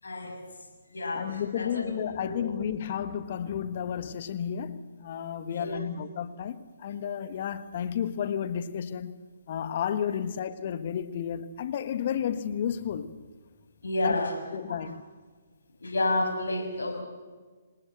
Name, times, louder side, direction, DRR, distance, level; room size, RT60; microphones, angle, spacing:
voice 1, 0.0-0.4 0.9-1.9 2.2-2.5 5.5-5.8 13.8-14.4 14.7-14.9 15.8-17.0, left 2 dB, 75° left, 6.6 m, -30 dB
voice 2, 1.1-9.1 9.5-13.2 14.0-14.2 14.5-15.0, left 8 dB, 50° left, 1.4 m, -32 dB
26.5 x 18.5 x 7.8 m
figure-of-eight pair, 135°, 0 cm